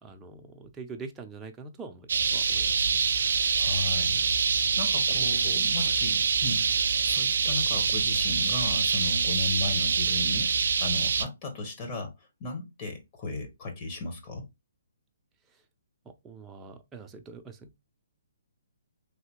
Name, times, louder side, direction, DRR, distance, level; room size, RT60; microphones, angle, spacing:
voice 1, 0.0-3.0 5.4-6.0 15.5-15.6 16.0-17.7, right 4 dB, 15° right, 0.5 m, -44 dB
sound 1, 2.1-11.3, right 5 dB, 70° right, 0.4 m, -25 dB
voice 2, 3.6-4.3 4.8-14.5, left 3 dB, 30° left, 1.1 m, -35 dB
3.3 x 2.7 x 3.0 m
hypercardioid pair, 150°, 0 cm